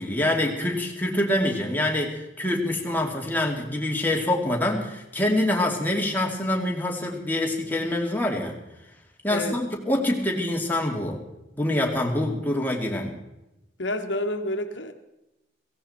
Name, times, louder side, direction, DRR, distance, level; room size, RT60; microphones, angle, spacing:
voice 1, 0.0-8.5 9.2-11.2 11.6-13.1, left 1 dB, 10° left, 0 dB, 2.5 m, -25 dB
voice 2, 9.3-9.6 13.8-14.9, left 1 dB, 85° left, 6 dB, 1.6 m, -29 dB
17.0 x 16.5 x 4.4 m, 0.93 s
head